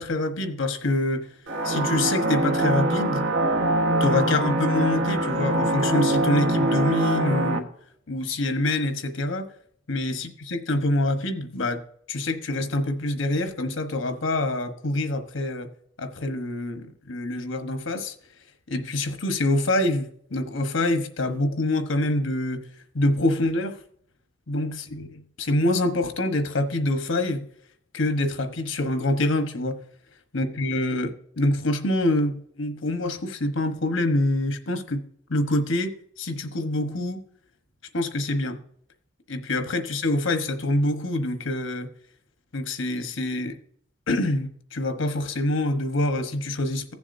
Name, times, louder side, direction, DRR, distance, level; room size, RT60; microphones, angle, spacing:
voice 1, 0.0-1.3 1.6-3.3 4.0-7.7 8.1-9.4 9.9-11.8 12.1-15.7 16.0-18.1 18.7-22.6 22.9-23.8 24.5-27.5 27.9-29.8 30.3-37.2 37.9-38.6 39.3-41.9 42.5-43.6 44.1-46.9, left 1 dB, 80° left, 7 dB, 1.1 m, -26 dB
sound 1, 1.5-7.6, right 1 dB, 65° right, 1.3 m, -23 dB
16.5 x 7.2 x 2.6 m, 0.65 s
head